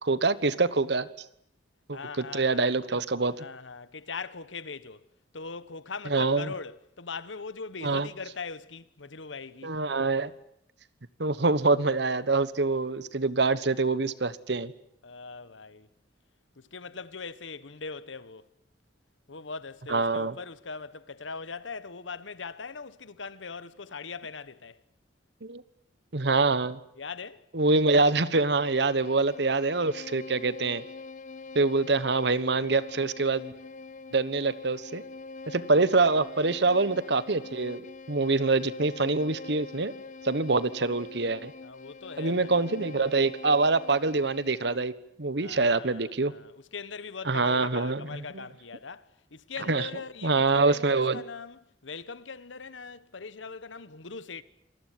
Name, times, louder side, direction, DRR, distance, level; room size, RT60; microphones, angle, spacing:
voice 1, 0.0-1.1 1.9-3.4 6.1-6.5 7.8-8.1 9.6-10.3 11.2-14.7 19.9-20.4 25.4-25.6 26.1-26.8 27.5-30.8 31.5-33.5 34.1-35.0 35.5-39.9 40.2-41.5 42.2-44.9 45.2-46.3 47.2-48.4 49.7-49.9 50.2-51.2, right 3 dB, 65° right, 1.2 m, -25 dB
voice 2, 1.9-2.7 3.4-5.0 5.3-9.8 15.0-15.9 16.6-18.5 19.3-24.8 26.9-27.4 38.3-38.5 41.6-42.6 45.4-54.4, left 4 dB, 90° left, 1.3 m, -41 dB
Bowed string instrument, 28.5-44.9, left 4 dB, 45° left, 1.0 m, -44 dB
26.5 x 20.0 x 9.3 m
head